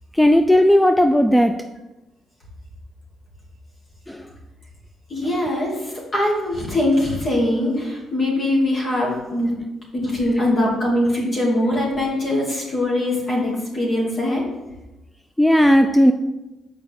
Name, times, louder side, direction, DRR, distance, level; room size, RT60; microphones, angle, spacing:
voice 1, 0.2-1.5 4.1-4.2 15.4-16.1, equal, 5° left, 6 dB, 0.4 m, -15 dB
voice 2, 5.1-9.5 9.9-14.4, left 1 dB, 45° left, -3 dB, 2.7 m, -22 dB
6.6 x 5.0 x 5.3 m, 1.0 s
cardioid pair, 90°, 0 cm